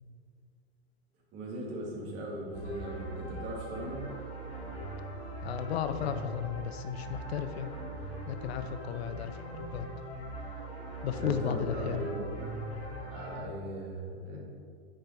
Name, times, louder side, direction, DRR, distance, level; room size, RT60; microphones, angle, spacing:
voice 1, 1.3-4.0 11.2-12.6 13.1-14.4, right 1 dB, 30° right, -3 dB, 2.2 m, -38 dB
sound 1, 2.5-13.4, right 1 dB, 20° left, 2.0 m, -41 dB
voice 2, 5.4-7.7 8.3-9.9 11.0-12.1, left 9 dB, 70° left, 9 dB, 0.6 m, -34 dB
8.8 x 5.3 x 4.4 m, 2.3 s
supercardioid pair, 155°, 33 cm